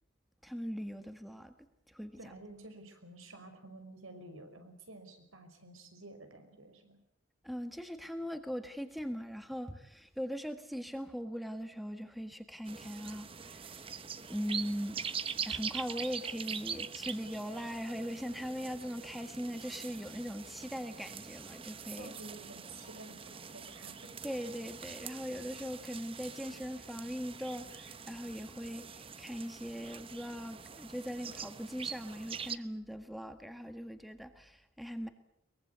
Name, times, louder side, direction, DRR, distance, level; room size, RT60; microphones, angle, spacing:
voice 1, 0.4-1.5 1.9-2.3 7.4-14.0 14.3-15.2 15.4-22.1 24.2-35.1, equal, ahead, 8 dB, 1.6 m, -40 dB
voice 2, 2.2-7.0 22.0-24.1, right 2 dB, 90° right, 7 dB, 5.5 m, -51 dB
sound 1, 12.7-32.6, right 6 dB, 25° right, 0.9 m, -44 dB
23.5 x 21.5 x 8.2 m, 0.73 s
head